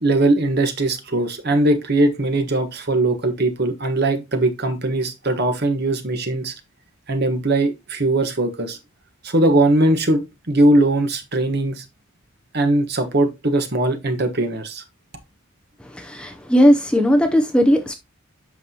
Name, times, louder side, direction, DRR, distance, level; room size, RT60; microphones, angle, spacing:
voice 1, 0.0-6.5 7.1-8.8 9.2-11.8 12.5-14.8, right 2 dB, 50° right, 1.4 m, -20 dB
voice 2, 15.8-17.9, equal, 5° left, 0.6 m, -17 dB
8.3 x 5.9 x 2.9 m
head